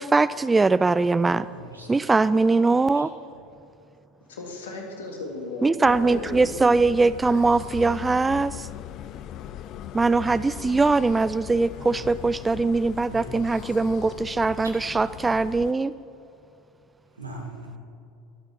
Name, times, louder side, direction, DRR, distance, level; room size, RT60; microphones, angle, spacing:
voice 1, 0.0-1.5 1.9-3.1 5.6-8.7 9.9-15.9, right 3 dB, 15° right, 16 dB, 0.3 m, -21 dB
voice 2, 1.5-2.2 2.9-3.0 11.7-12.5 13.1-13.5 17.2-17.8, right 1 dB, 90° right, 2 dB, 1.9 m, -41 dB
voice 3, 4.3-6.5, left 2 dB, 75° left, 1 dB, 2.1 m, -35 dB
sound 1, 5.8-15.7, left 12 dB, 50° left, 0.5 m, -39 dB
23.5 x 8.4 x 4.2 m, 2.7 s
figure-of-eight pair, 75°, 0 cm